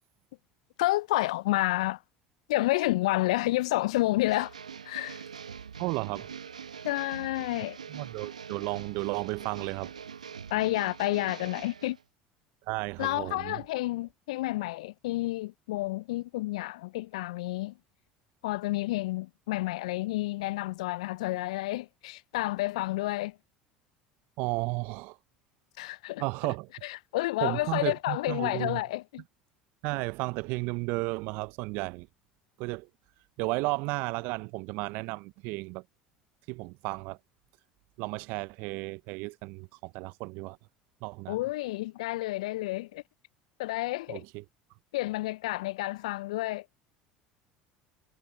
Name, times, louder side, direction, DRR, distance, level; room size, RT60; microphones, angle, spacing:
voice 1, 0.8-2.0 2.5-4.5 4.8-5.2 6.8-7.8 10.5-12.0 13.0-17.7 18.4-23.4 25.8-26.2 26.8-29.2 41.3-43.0 43.6-44.2 44.9-46.7, left 18 dB, 70° left, 0.4 m, -30 dB
sound 1, 4.3-12.0, right 7 dB, 85° right, 1.1 m, -44 dB
voice 2, 5.8-6.3 7.9-9.9 12.7-13.6 24.4-25.2 26.2-26.7 27.4-28.8 29.8-32.1 32.6-32.9 33.4-35.8 36.5-37.2 38.0-40.6 41.0-41.4 44.1-44.4, right 26 dB, 60° right, 0.6 m, -33 dB
figure-of-eight pair, 70°, 4 cm